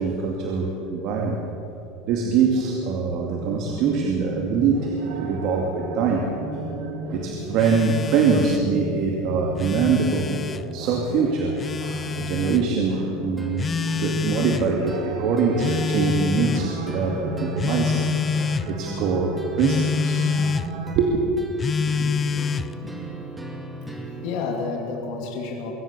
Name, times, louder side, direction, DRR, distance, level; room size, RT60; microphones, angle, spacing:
voice 1, 0.0-1.5 2.1-6.3 7.0-10.4 10.7-13.7 14.0-18.1 18.4-20.3 20.9-21.2, right 5 dB, 55° right, 1 dB, 2.4 m, -23 dB
sound 1, 3.3-21.0, right 2 dB, 85° right, 3.0 m, -35 dB
Telephone, 7.6-8.7 9.4-10.6 11.6-12.6 13.6-14.7 15.6-16.7 17.6-18.7 19.6-20.7 21.6-22.7, left 6 dB, 25° left, 0.5 m, -27 dB
sound 2, 13.4-24.4, right 1 dB, 10° right, 2.4 m, -39 dB
voice 2, 21.6-22.4 22.8-23.1 23.9-25.7, left 4 dB, 65° left, 1 dB, 3.0 m, -32 dB
23.5 x 17.0 x 7.0 m, 2.8 s
supercardioid pair, 130°, 0 cm